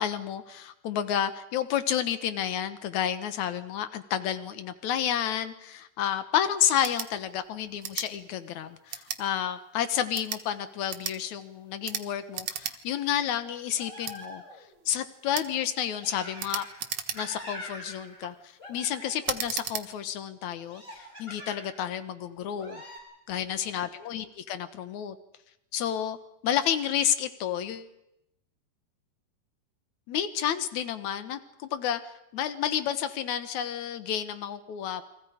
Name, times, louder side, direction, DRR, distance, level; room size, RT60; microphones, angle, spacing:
voice 1, 0.0-14.4 14.8-16.6 17.1-18.3 18.7-20.8 21.2-22.8 23.3-25.2 25.7-26.2 26.4-27.9 30.1-32.0 32.3-35.0, left 10 dB, 70° left, 11 dB, 1.8 m, -30 dB
sound 1, 6.8-7.1 7.8-8.1 8.9-9.2 10.0-10.4 10.9-11.2 11.8-12.1 12.3-12.8 13.1-13.2 14.0-14.2 15.3-15.5 16.4-17.5 18.0-18.3 19.2-19.9, right 9 dB, 70° right, 1.5 m, -35 dB
sound 2, 13.8-14.7 16.0-16.8 17.1-18.3 18.6-19.4 20.6-21.9 22.5-23.0, left 1 dB, 10° left, 7.9 m, -44 dB
29.5 x 24.0 x 5.1 m, 0.85 s
omnidirectional pair, 5.0 m